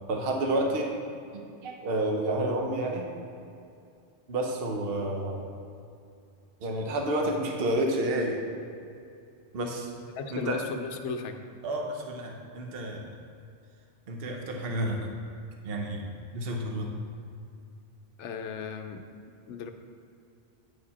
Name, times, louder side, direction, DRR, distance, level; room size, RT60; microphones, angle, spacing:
voice 1, 0.1-0.9 1.3-3.1 4.3-5.4 6.6-8.4 9.5-9.9 10.3-10.6 11.6-13.1 14.1-15.1 15.6-16.1 16.3-16.9, right 1 dB, 55° right, 1 dB, 1.1 m, -30 dB
voice 2, 10.2-11.4 18.2-19.7, left 5 dB, 70° left, 7 dB, 0.9 m, -36 dB
9.2 x 5.0 x 4.2 m, 2.5 s
omnidirectional pair, 1.3 m